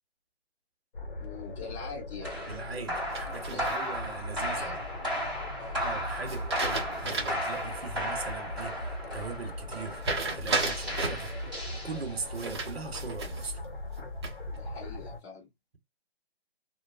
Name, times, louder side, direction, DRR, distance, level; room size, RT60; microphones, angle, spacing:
sound 1, 0.9-15.2, left 2 dB, 55° left, 0.8 m, -40 dB
voice 1, 1.2-2.4 3.5-3.7 4.6-4.8 5.6-5.8 14.5-15.5, left 5 dB, 25° left, 1.2 m, -43 dB
sound 2, 2.2-12.4, equal, ahead, 1.2 m, -35 dB
voice 2, 2.5-4.8 5.7-10.0 10.3-11.3 11.8-13.6, right 5 dB, 70° right, 0.8 m, -40 dB
sound 3, 3.1-4.1 6.3-7.5 7.9-8.0 10.0-11.3 12.3-13.5 14.0-14.6, right 3 dB, 25° right, 0.6 m, -33 dB
2.6 x 2.1 x 2.3 m
figure-of-eight pair, 150°, 32 cm